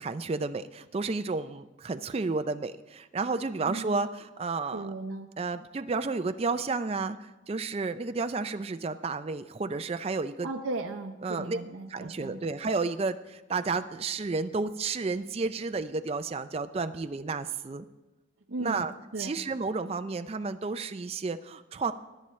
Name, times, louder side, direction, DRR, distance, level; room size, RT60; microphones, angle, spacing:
voice 1, 0.0-4.9 5.4-10.5 11.2-11.6 11.9-17.9 18.6-18.9 19.2-21.9, right 4 dB, 30° right, 9 dB, 0.4 m, -31 dB
voice 2, 3.7-4.0 4.7-5.3 10.4-12.4 18.5-18.8 19.1-19.4, right 2 dB, 75° right, 3 dB, 0.7 m, -36 dB
20.0 x 9.9 x 3.2 m, 1.1 s
head